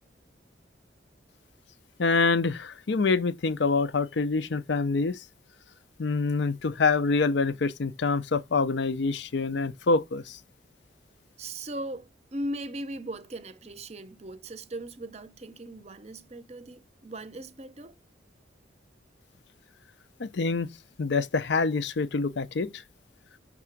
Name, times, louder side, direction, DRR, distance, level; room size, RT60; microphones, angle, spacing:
voice 1, 2.0-5.2 6.0-10.4 20.2-20.7 21.0-22.8, left 4 dB, 70° left, 0.5 m, -26 dB
voice 2, 11.4-17.9, right 1 dB, 35° right, 0.6 m, -38 dB
5.9 x 3.6 x 5.8 m
head